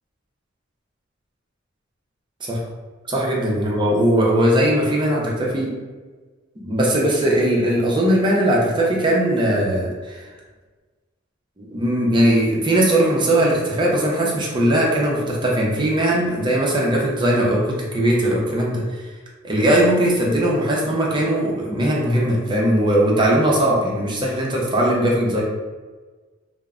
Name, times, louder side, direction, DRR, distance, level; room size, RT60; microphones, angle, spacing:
voice 1, 3.1-5.7 6.6-10.2 11.6-19.0 19.4-25.4, right 1 dB, 25° right, -3 dB, 0.5 m, -19 dB
2.1 x 2.0 x 3.5 m, 1.3 s
head